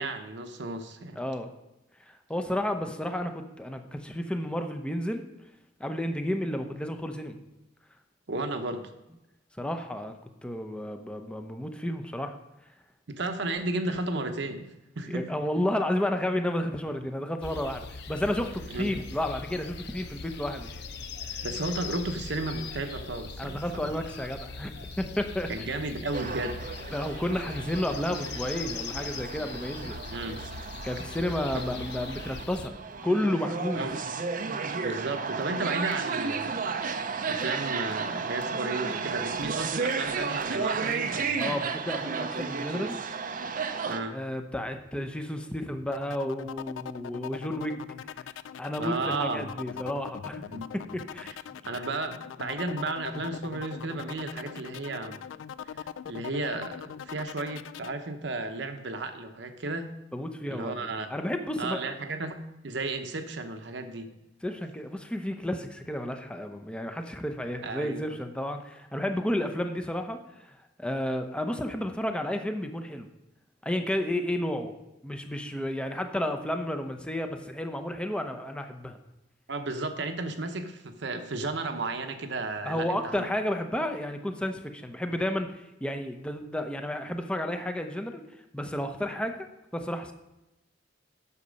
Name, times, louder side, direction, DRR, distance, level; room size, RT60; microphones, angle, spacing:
voice 1, 0.0-1.2 8.3-8.9 13.1-14.7 15.0-15.3 18.7-19.0 21.4-24.0 25.5-26.6 30.1-30.5 31.5-31.6 33.8-34.0 34.7-36.6 36.9-41.5 43.9-44.2 48.8-49.5 50.5-50.7 51.2-51.3 51.6-55.2 55.6-60.0 60.5-61.1 61.6-64.1 67.6-68.0 79.5-83.3, right 2 dB, 65° right, 7 dB, 0.9 m, -34 dB
voice 2, 1.2-1.5 2.1-5.3 5.8-7.4 9.6-12.4 15.1-20.7 23.4-25.5 26.9-30.0 30.8-32.7 33.0-33.9 41.4-43.0 44.1-47.8 48.6-50.4 50.7-51.3 60.1-61.9 64.4-73.1 73.6-74.7 75.0-79.0 82.6-88.2 88.5-90.1, left 1 dB, 5° left, 6 dB, 0.7 m, -32 dB
sound 1, 17.4-32.7, left 4 dB, 65° left, 0.7 m, -40 dB
sound 2, 26.1-44.0, right 5 dB, 45° right, 0.6 m, -33 dB
sound 3, 45.9-57.9, left 8 dB, 85° left, 0.3 m, -41 dB
8.4 x 6.7 x 5.2 m, 0.95 s
head